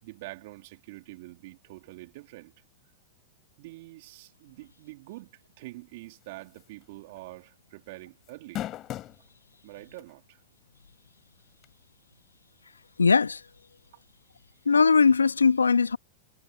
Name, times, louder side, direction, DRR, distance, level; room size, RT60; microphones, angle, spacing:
voice 1, 0.0-2.5 3.6-8.7 9.6-10.4 13.9-14.0, right 20 dB, 55° right, 3.6 m, -45 dB
sound 1, 6.6-6.8 7.2-7.3 8.3-9.2 10.0-10.1 11.6-11.7, left 13 dB, 35° left, 4.0 m, -35 dB
voice 2, 13.0-13.4 14.6-16.0, left 5 dB, 85° left, 1.6 m, -20 dB
figure-of-eight pair, 100°, 0 cm